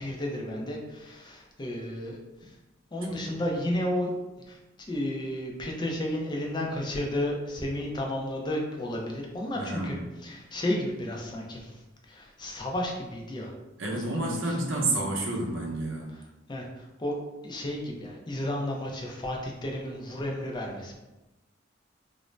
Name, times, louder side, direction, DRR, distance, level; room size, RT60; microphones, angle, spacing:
voice 1, 0.0-2.5 2.9-4.2 4.5-4.6 4.9-10.0 10.2-11.8 12.1-13.5 13.9-14.4 16.5-17.1 17.4-21.0, left 1 dB, 25° left, 0 dB, 0.4 m, -32 dB
voice 2, 3.1-3.4 9.6-10.0 13.8-16.1, right 2 dB, 85° right, -1 dB, 0.7 m, -30 dB
2.5 x 2.0 x 3.1 m, 1.0 s
head